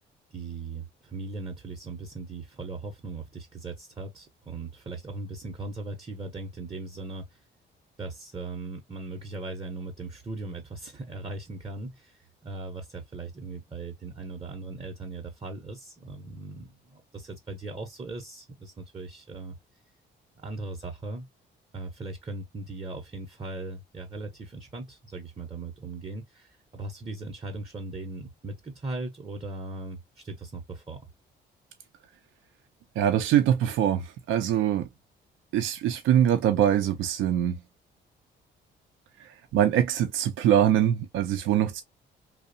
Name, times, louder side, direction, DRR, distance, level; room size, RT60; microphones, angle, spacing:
voice 1, 0.3-7.4 8.0-19.6 20.4-21.3 21.7-31.1, right 2 dB, 25° right, 0.6 m, -38 dB
voice 2, 33.0-34.9 35.5-37.6 39.2-41.8, right 10 dB, 85° right, 0.4 m, -23 dB
2.7 x 2.0 x 2.4 m
cardioid pair, 90°, 20 cm